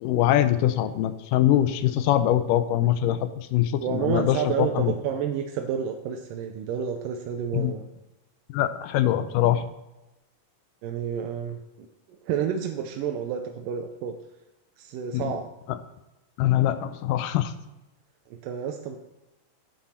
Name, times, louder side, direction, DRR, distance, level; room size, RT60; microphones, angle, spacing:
voice 1, 0.0-4.9 7.5-7.7 8.5-9.6 15.1-15.3 15.7-15.8 16.4-17.5, left 12 dB, 80° left, 12 dB, 2.1 m, -23 dB
voice 2, 3.8-7.9 10.8-14.2 14.8-15.5 18.3-19.0, right 8 dB, 90° right, 4 dB, 2.3 m, -30 dB
9.5 x 8.9 x 4.3 m, 0.99 s
omnidirectional pair, 3.9 m